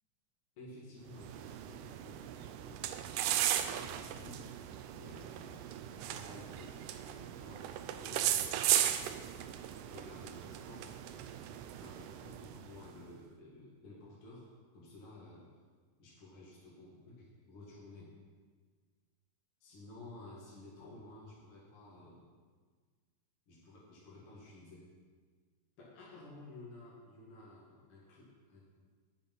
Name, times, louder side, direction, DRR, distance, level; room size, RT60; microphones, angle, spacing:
voice 1, 0.6-3.1 3.6-4.6 4.9-11.4 11.8-15.5 16.0-18.1 19.6-22.2 23.5-24.9 25.8-28.7, left 2 dB, 45° left, -5 dB, 2.4 m, -54 dB
sound 1, 1.1-12.9, right 11 dB, 80° right, 2.0 m, -37 dB
10.0 x 8.1 x 5.4 m, 1.5 s
omnidirectional pair, 3.8 m